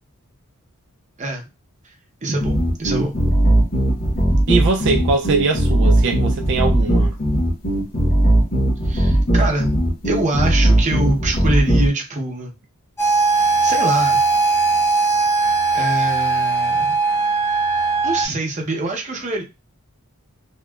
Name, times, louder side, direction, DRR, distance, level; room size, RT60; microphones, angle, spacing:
voice 1, 2.2-3.2 8.8-9.7 10.0-12.5 13.6-14.2 15.7-16.9 18.0-19.4, right 2 dB, 35° right, 0.7 m, -24 dB
sound 1, 2.4-11.9, right 1 dB, 45° left, 1.1 m, -17 dB
voice 2, 4.5-7.1, right 4 dB, 55° right, 0.4 m, -21 dB
sound 2, 13.0-18.3, right 4 dB, 10° left, 0.7 m, -19 dB
2.8 x 2.3 x 2.3 m
head